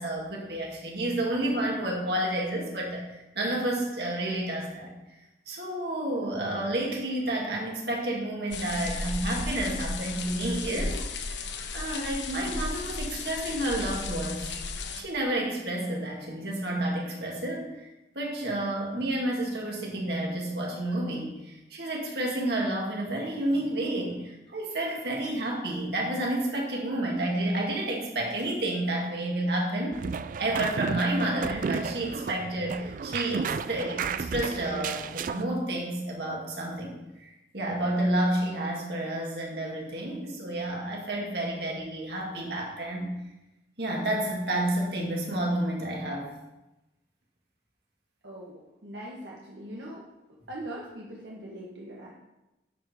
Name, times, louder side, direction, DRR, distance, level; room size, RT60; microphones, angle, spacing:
voice 1, 0.0-4.9 5.5-11.4 11.7-14.5 14.9-17.9 18.1-30.0 30.4-43.1 43.8-46.3, right 1 dB, 65° right, -2 dB, 2.2 m, -30 dB
sound 1, 8.5-15.0, left 3 dB, 80° left, 0.9 m, -34 dB
sound 2, 29.9-35.4, right 5 dB, 45° right, 0.3 m, -33 dB
voice 2, 48.2-50.0 50.5-52.1, right 1 dB, 85° right, -4 dB, 1.4 m, -41 dB
10.5 x 5.0 x 5.0 m, 0.98 s
head